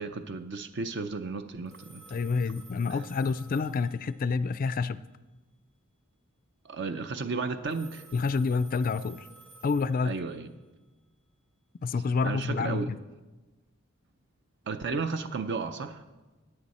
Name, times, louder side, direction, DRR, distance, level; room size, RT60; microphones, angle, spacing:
voice 1, 0.0-2.3 2.9-3.0 6.6-8.0 10.0-10.5 12.2-12.9 14.7-16.0, right 4 dB, 55° right, 8 dB, 0.6 m, -34 dB
Telephone, 1.7-4.5 7.7-10.5, right 3 dB, 75° right, 4.5 m, -54 dB
voice 2, 2.1-5.0 8.1-9.3 9.6-10.1 11.8-13.0, left 4 dB, 40° left, 15 dB, 0.3 m, -28 dB
14.5 x 9.6 x 4.2 m, 1.2 s
head